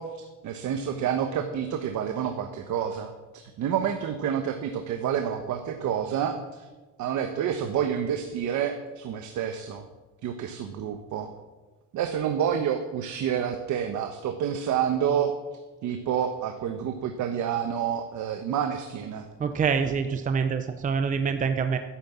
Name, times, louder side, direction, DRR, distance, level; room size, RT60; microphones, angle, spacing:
voice 1, 0.0-6.7 7.0-9.9 10.2-11.3 11.9-15.3 15.8-19.3, right 8 dB, 70° right, 6 dB, 1.3 m, -29 dB
voice 2, 19.4-21.8, right 6 dB, 25° right, 8 dB, 0.7 m, -26 dB
13.5 x 11.0 x 7.3 m, 1.2 s
cardioid pair, 175°, 30 cm